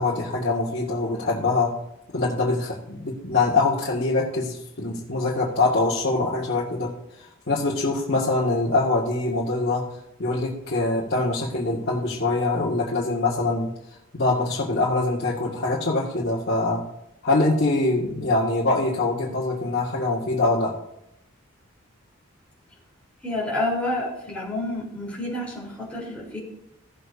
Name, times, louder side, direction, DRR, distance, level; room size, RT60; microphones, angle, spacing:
voice 1, 0.0-1.8 2.1-13.7 14.1-16.8 17.2-20.8, left 2 dB, 55° left, -7 dB, 2.0 m, -24 dB
voice 2, 23.2-26.4, left 1 dB, 5° left, -5 dB, 3.8 m, -29 dB
17.0 x 7.7 x 2.7 m, 0.84 s
head